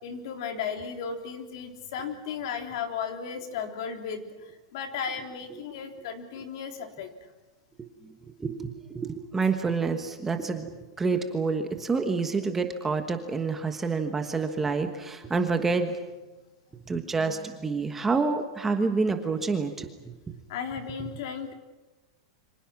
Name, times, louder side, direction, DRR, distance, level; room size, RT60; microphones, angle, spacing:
voice 1, 0.0-7.1 20.5-21.5, left 6 dB, 50° left, 5 dB, 3.5 m, -35 dB
voice 2, 8.4-16.0 16.9-19.9 20.3-20.4, right 4 dB, 10° right, 5 dB, 1.3 m, -28 dB
28.5 x 25.5 x 6.1 m, 1.1 s
supercardioid pair, 175°, 3 cm